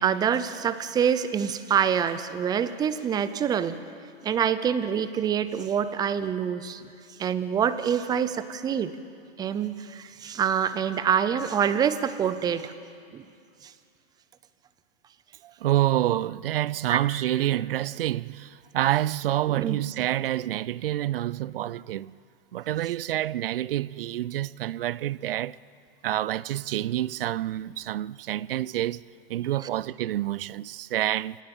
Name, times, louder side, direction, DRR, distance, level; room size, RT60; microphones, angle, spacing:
voice 1, 0.0-3.7 4.2-6.8 7.2-8.9 9.4-12.7 13.1-13.2 13.6-13.7 16.9-17.0 19.5-19.8, right 8 dB, 15° right, 0.6 m, -26 dB
voice 2, 15.4-22.1 22.5-25.6 26.0-29.0 29.3-31.4, right 13 dB, 65° right, 0.5 m, -28 dB
27.5 x 17.5 x 5.5 m
hypercardioid pair, 135°, 30 cm